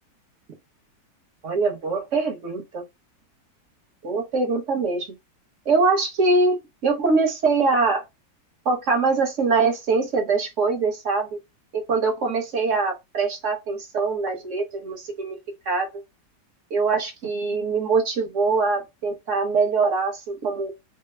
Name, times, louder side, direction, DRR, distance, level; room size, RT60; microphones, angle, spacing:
voice 1, 1.4-2.8 4.0-5.1 5.7-6.6 6.8-8.0 8.6-11.4 11.7-15.4 15.7-15.9 16.7-20.7, right 4 dB, 55° right, 1.1 m, -23 dB
3.4 x 2.0 x 3.2 m
omnidirectional pair, 1.8 m